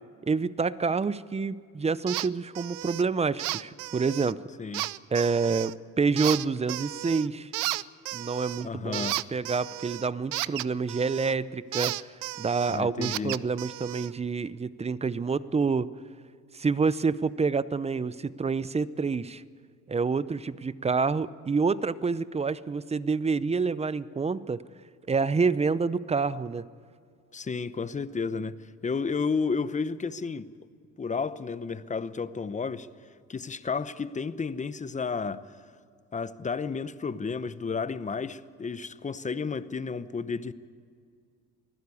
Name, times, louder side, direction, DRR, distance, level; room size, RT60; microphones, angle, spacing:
voice 1, 0.3-4.4 5.1-7.5 8.1-12.0 12.4-15.9 16.5-19.4 19.9-24.6 25.1-26.7, right 4 dB, 20° right, 0.6 m, -28 dB
sound 1, 2.1-2.3 2.6-3.0 3.4-4.3 4.7-5.7 6.2-7.3 7.5-11.4 11.7-14.1, right 19 dB, 90° right, 0.5 m, -33 dB
voice 2, 8.6-9.2 12.7-13.4 27.3-28.6 28.8-30.5 31.0-32.9 33.3-35.5 36.1-40.5, left 5 dB, 25° left, 0.8 m, -32 dB
24.0 x 16.0 x 8.5 m
cardioid pair, 95°, 31 cm